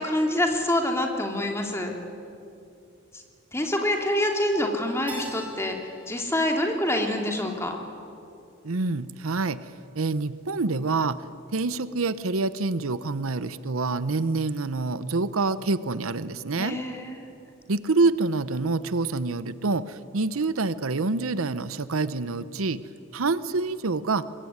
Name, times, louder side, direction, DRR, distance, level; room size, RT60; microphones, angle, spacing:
voice 1, 0.0-1.9 3.5-5.8 6.1-7.8 16.6-17.2, left 1 dB, 10° left, 2 dB, 2.8 m, -26 dB
Keyboard (musical), 5.1-7.9, left 1 dB, 5° right, 3.9 m, -44 dB
voice 2, 8.6-9.7 9.9-11.2 11.5-16.8 17.7-22.8 23.1-24.3, right 3 dB, 80° right, 15 dB, 0.8 m, -26 dB
24.5 x 22.5 x 9.6 m, 2.6 s
head